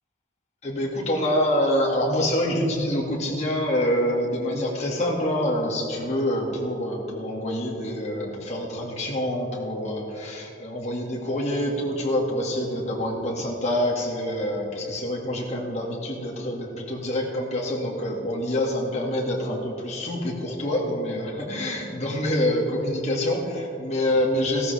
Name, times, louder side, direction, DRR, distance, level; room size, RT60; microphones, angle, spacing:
voice 1, 0.6-24.7, left 1 dB, 35° left, -3 dB, 2.1 m, -26 dB
15.5 x 13.5 x 3.5 m, 2.8 s
head